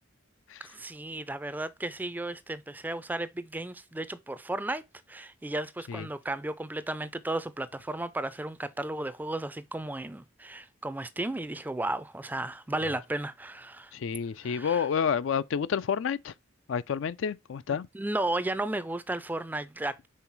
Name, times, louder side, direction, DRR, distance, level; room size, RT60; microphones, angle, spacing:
voice 1, 0.6-4.8 5.1-13.9 14.4-14.9 17.7-20.1, right 2 dB, 10° right, 0.4 m, -34 dB
voice 2, 13.9-16.3 16.7-17.9, left 7 dB, 65° left, 0.4 m, -29 dB
5.6 x 3.9 x 4.4 m
head